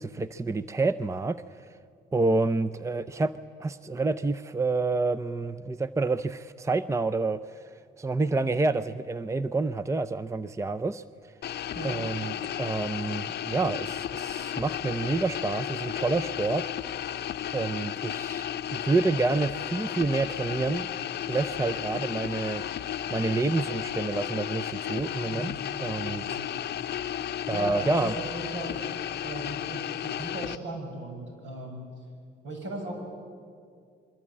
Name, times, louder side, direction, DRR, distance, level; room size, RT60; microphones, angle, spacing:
voice 1, 0.0-1.7 2.1-3.3 3.6-7.6 8.0-11.3 11.8-16.7 17.5-18.5 18.7-20.9 21.3-22.6 23.1-25.5 25.8-26.4 27.5-28.1, right 3 dB, 15° right, 13 dB, 0.6 m, -28 dB
sound 1, 11.4-30.6, left 10 dB, 55° left, 0.7 m, -34 dB
voice 2, 25.3-26.5 27.5-28.8 29.2-31.9 32.4-33.1, right 1 dB, 70° right, 2 dB, 7.4 m, -37 dB
28.0 x 23.5 x 8.7 m, 2.3 s
cardioid pair, 90°, 20 cm